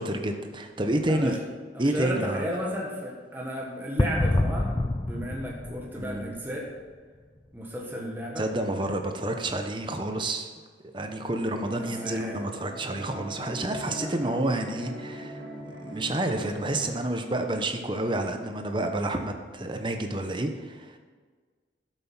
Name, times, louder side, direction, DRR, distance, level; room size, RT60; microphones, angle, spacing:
voice 1, 0.0-1.4 1.8-2.5 6.0-6.4 8.4-10.5 10.9-15.4 15.8-21.0, right 1 dB, 25° right, 5 dB, 1.0 m, -29 dB
voice 2, 1.7-4.8 5.0-6.7 7.5-8.5 11.8-12.4 13.9-14.2, equal, 10° right, -3 dB, 1.6 m, -34 dB
sound 1, 4.0-6.7, left 1 dB, 25° left, 0.4 m, -27 dB
guitar loop, 11.6-17.0, equal, 85° right, 3.2 m, -41 dB
12.5 x 7.7 x 5.8 m, 1.5 s
head